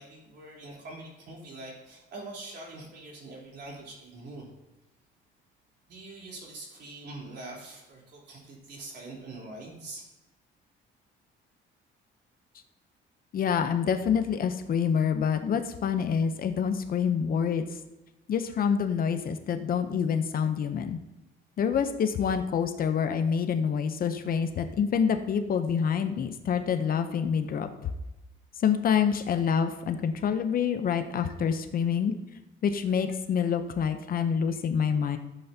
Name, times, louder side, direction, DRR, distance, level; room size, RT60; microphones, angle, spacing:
voice 1, 0.0-4.5 5.9-10.0, right 2 dB, 60° right, -3 dB, 3.5 m, -44 dB
voice 2, 13.3-17.6 18.3-21.0 21.6-27.9 28.6-32.1 32.6-35.2, left 7 dB, 45° left, 8 dB, 0.7 m, -27 dB
14.0 x 8.0 x 2.8 m, 0.99 s
cardioid pair, 135°, 20 cm